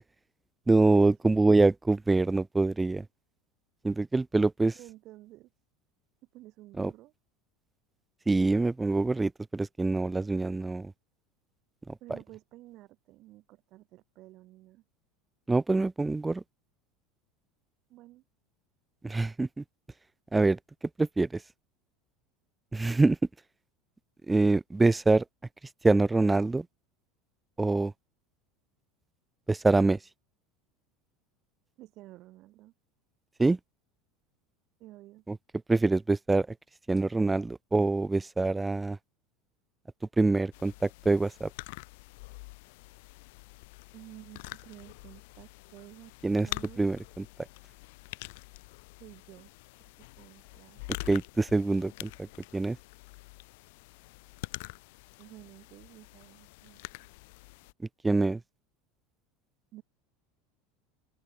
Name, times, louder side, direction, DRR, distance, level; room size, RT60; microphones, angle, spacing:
voice 1, 0.7-3.0 3.8-4.7 6.8-6.9 8.3-10.9 11.9-12.0 15.5-16.4 19.0-19.6 20.3-20.6 21.0-21.4 22.7-23.2 24.3-25.2 25.8-26.7 27.6-27.9 29.5-30.0 33.4-33.6 35.3-35.4 35.7-36.5 36.9-39.0 40.2-41.5 46.2-46.5 46.8-47.2 51.1-52.3 52.5-52.8 58.0-58.4, right 3 dB, 10° right, 1.0 m, -25 dB
voice 2, 4.7-5.5 6.3-7.1 12.0-14.8 17.9-18.2 31.8-32.7 34.8-35.2 43.9-46.1 46.4-46.8 49.0-49.5 50.0-50.8 55.2-57.1 59.7-59.8, right 17 dB, 50° right, 8.0 m, -51 dB
sound 1, 40.5-57.7, left 25 dB, 75° left, 4.1 m, -46 dB
open air
supercardioid pair, 130°, 0 cm